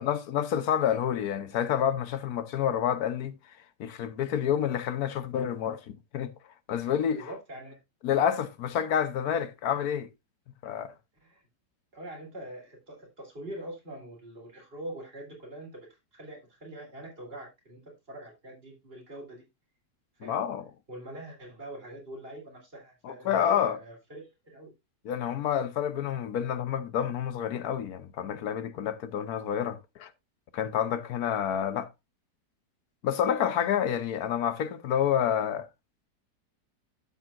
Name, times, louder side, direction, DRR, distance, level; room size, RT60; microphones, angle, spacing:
voice 1, 0.0-3.3 3.8-6.3 6.7-7.3 8.0-10.1 10.6-10.9 20.2-20.6 23.0-23.8 25.0-30.1 30.5-31.9 33.0-35.7, left 9 dB, 65° left, 1.2 m, -28 dB
voice 2, 6.7-7.8 11.2-11.4 11.9-17.8 18.1-19.4 20.2-20.4 20.9-24.7, right 1 dB, 35° right, 3.6 m, -43 dB
12.0 x 6.6 x 2.5 m
omnidirectional pair, 1.8 m